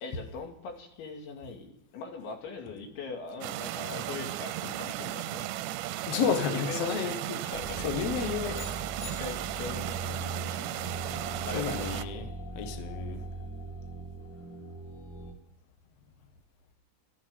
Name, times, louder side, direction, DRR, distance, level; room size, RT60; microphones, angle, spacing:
voice 1, 0.0-5.5 6.5-7.2 7.4-8.0 8.6-8.7 9.0-10.8 11.4-11.7, left 4 dB, 80° left, 4.8 m, -41 dB
sound 1, 3.4-12.0, right 14 dB, 80° right, 2.5 m, -35 dB
voice 2, 6.1-7.4 7.8-8.6 11.5-13.2, left 6 dB, 65° left, 1.6 m, -31 dB
sound 2, 7.5-15.3, right 2 dB, 45° left, 4.0 m, -40 dB
sound 3, 8.5-9.9, left 7 dB, 20° left, 1.6 m, -47 dB
14.0 x 10.0 x 9.6 m
omnidirectional pair, 5.3 m